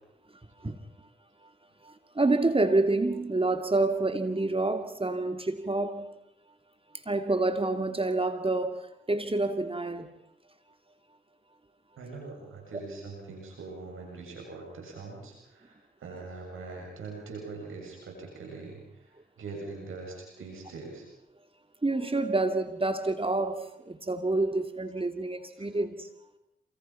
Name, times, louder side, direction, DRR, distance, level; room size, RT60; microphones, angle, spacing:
voice 1, 1.8-6.1 7.1-10.1 21.8-26.1, right 2 dB, 25° right, 8 dB, 2.7 m, -28 dB
voice 2, 12.0-21.0 25.6-25.7, right 3 dB, 80° right, 0 dB, 7.1 m, -42 dB
28.0 x 26.0 x 5.8 m, 0.84 s
supercardioid pair, 40°, 21 cm